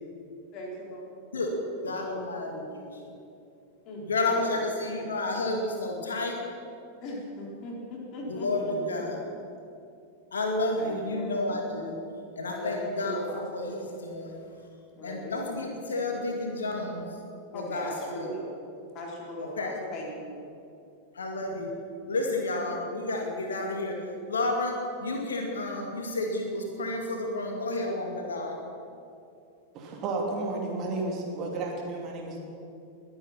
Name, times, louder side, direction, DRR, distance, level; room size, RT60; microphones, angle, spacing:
voice 1, 0.5-1.2 2.0-2.5 3.9-4.6 7.0-9.0 10.8-11.4 12.4-13.7 15.0-15.5 17.5-18.5 18.9-20.4, left 1 dB, 35° left, -2 dB, 4.0 m, -39 dB
voice 2, 1.3-3.0 4.1-6.3 8.3-9.2 10.3-12.1 12.4-14.4 15.0-17.1 17.5-18.3 19.6-19.8 21.1-21.7 22.1-24.0 24.3-28.6, left 2 dB, 70° left, 1 dB, 2.5 m, -31 dB
voice 3, 29.7-32.4, right 2 dB, 35° right, 0 dB, 3.1 m, -32 dB
22.0 x 9.5 x 5.9 m, 2.5 s
figure-of-eight pair, 90°, 0 cm